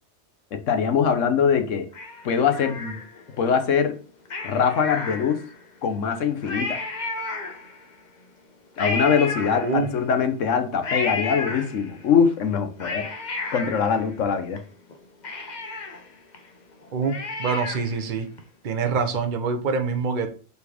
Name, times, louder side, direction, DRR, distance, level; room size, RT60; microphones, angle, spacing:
voice 1, 0.5-1.9 2.2-3.0 3.4-4.0 4.4-5.4 5.8-6.8 8.8-13.1 13.5-14.6, left 6 dB, 80° left, 8 dB, 1.3 m, -22 dB
Cat, 1.9-3.4 4.2-5.7 6.1-6.2 6.4-7.9 8.8-10.1 10.8-12.1 12.6-14.6 14.9-15.0 15.2-18.0 18.4-18.5, left 3 dB, 40° left, 1.0 m, -32 dB
voice 2, 9.5-9.9 16.9-18.3 18.6-20.3, right 5 dB, 45° right, 6 dB, 0.9 m, -25 dB
5.4 x 4.4 x 4.9 m, 0.37 s
omnidirectional pair, 1.3 m